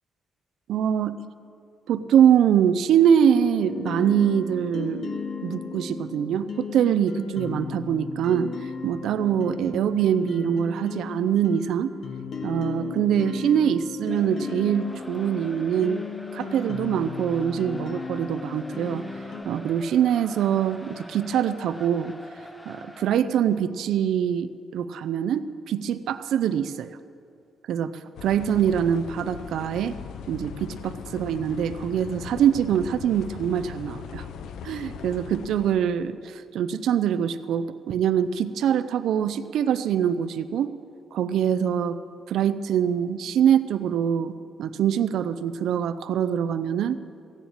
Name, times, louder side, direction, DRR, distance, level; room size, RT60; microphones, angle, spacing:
voice 1, 0.7-1.2 1.9-5.0 5.4-8.5 8.8-11.9 12.4-16.0 16.3-19.0 19.5-22.1 22.7-26.9 27.7-27.9 28.2-30.0 30.3-34.2 34.6-40.7 41.1-42.0 42.3-44.3 44.6-47.0, right 9 dB, 75° right, 13 dB, 0.5 m, -24 dB
sound 1, 3.3-19.4, left 4 dB, 50° left, 1.1 m, -35 dB
sound 2, 14.1-23.1, left 1 dB, 10° left, 0.8 m, -45 dB
sound 3, 28.2-35.8, left 7 dB, 80° left, 0.7 m, -39 dB
16.0 x 7.2 x 8.8 m, 2.4 s
cardioid pair, 170°, 0 cm